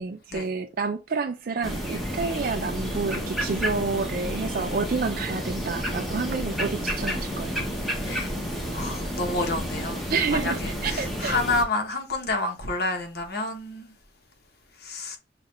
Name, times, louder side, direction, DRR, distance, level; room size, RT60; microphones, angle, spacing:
voice 1, 0.0-7.7 10.1-11.4, right 4 dB, 50° right, 0.4 m, -29 dB
sound 1, 1.6-11.6, equal, ahead, 1.0 m, -30 dB
voice 2, 8.7-10.0 10.4-13.9 14.8-15.2, left 2 dB, 55° left, 1.1 m, -29 dB
6.5 x 2.5 x 3.1 m
head